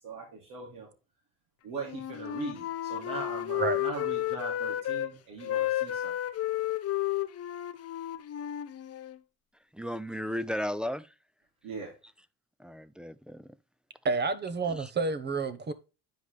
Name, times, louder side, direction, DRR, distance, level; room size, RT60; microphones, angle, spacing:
voice 1, 0.0-0.9 1.6-6.1 11.6-11.9, right 5 dB, 80° right, 2.8 m, -40 dB
Wind instrument woodwind instrument, 1.8-5.1 5.4-9.2, left 13 dB, 45° left, 0.7 m, -32 dB
voice 2, 9.7-11.1 12.6-13.6 14.7-14.9, equal, 5° right, 0.3 m, -35 dB
voice 3, 14.0-15.7, right 4 dB, 30° right, 1.0 m, -29 dB
9.4 x 5.0 x 3.3 m
cardioid pair, 115°, 35 cm